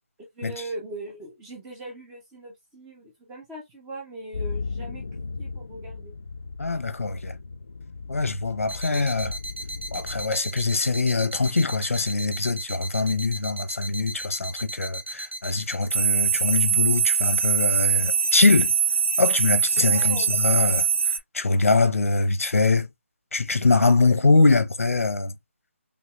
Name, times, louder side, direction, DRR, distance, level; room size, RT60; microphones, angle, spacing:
voice 1, 0.3-5.0 5.4-6.1 8.9-9.1 19.9-20.3, right 2 dB, 5° right, 0.3 m, -39 dB
sound 1, 4.3-10.3, left 4 dB, 45° left, 0.5 m, -36 dB
voice 2, 6.6-7.4 8.1-9.4 9.9-18.7 19.2-20.9 21.3-22.9 23.3-25.3, left 3 dB, 85° left, 1.0 m, -23 dB
sound 2, 8.7-21.2, right 7 dB, 60° right, 0.9 m, -25 dB
5.6 x 2.2 x 3.1 m
hypercardioid pair, 175°, 7 cm